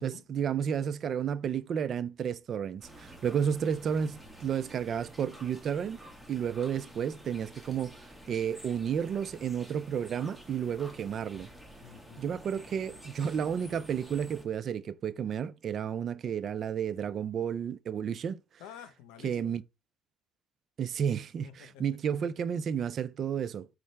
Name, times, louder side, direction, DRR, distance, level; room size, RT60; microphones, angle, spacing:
voice 1, 0.0-6.0 6.3-8.0 8.3-11.5 12.2-18.4 19.2-19.6 20.8-23.7, right 8 dB, 50° right, 0.3 m, -32 dB
sound 1, 2.8-14.5, equal, 5° left, 1.2 m, -50 dB
voice 2, 11.8-12.2 18.6-19.6 21.4-21.9, left 9 dB, 85° left, 0.7 m, -49 dB
5.3 x 2.4 x 3.2 m
supercardioid pair, 95°, 0 cm